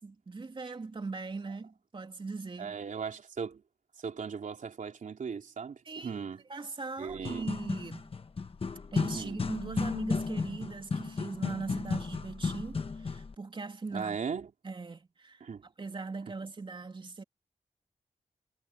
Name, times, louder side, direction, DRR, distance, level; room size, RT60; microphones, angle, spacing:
voice 1, 0.0-2.7 5.8-8.1 8.9-14.2 14.6-15.4 15.8-17.2, right 4 dB, 40° right, 3.2 m, -40 dB
voice 2, 2.6-3.6 4.0-6.4 7.0-7.6 9.1-9.4 13.9-14.5 15.4-15.7, right 6 dB, 85° right, 3.5 m, -38 dB
sound 1, 7.1-13.3, left 4 dB, 45° left, 1.3 m, -34 dB
wide cardioid pair, 130°, 13 cm